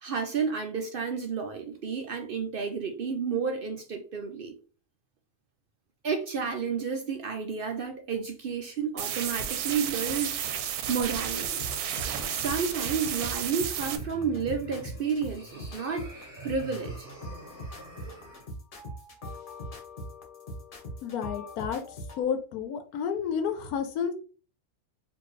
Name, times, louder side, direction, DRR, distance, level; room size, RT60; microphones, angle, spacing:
voice 1, 0.0-4.5 6.0-10.4 10.9-11.7 12.2-17.1, right 6 dB, 65° right, 0.5 m, -31 dB
sound 1, 9.0-14.0, right 9 dB, 85° right, 1.1 m, -32 dB
sound 2, 11.2-22.2, equal, 40° left, 1.0 m, -42 dB
sound 3, 13.7-18.5, right 2 dB, 5° right, 2.0 m, -46 dB
voice 2, 21.0-21.8 22.2-24.1, left 7 dB, 85° left, 1.1 m, -30 dB
4.4 x 2.7 x 3.1 m
omnidirectional pair, 1.6 m